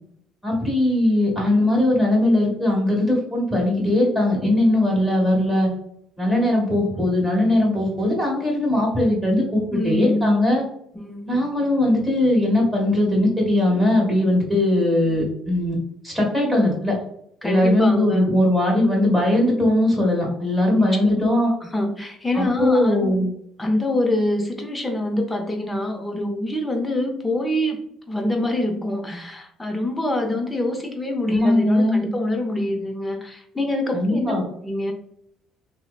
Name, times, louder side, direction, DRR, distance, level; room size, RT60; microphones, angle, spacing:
voice 1, 0.4-5.7 6.2-10.6 11.2-15.8 16.0-16.9 17.4-21.5 22.3-23.3 31.3-32.1 33.9-34.4, left 1 dB, 5° right, -3 dB, 1.4 m, -20 dB
voice 2, 9.7-10.5 10.9-11.4 17.4-18.3 20.8-23.2 23.6-27.8 28.1-34.4 34.6-34.9, left 1 dB, 15° left, 3 dB, 0.6 m, -25 dB
3.0 x 2.0 x 2.3 m, 0.73 s
supercardioid pair, 90°, 0 cm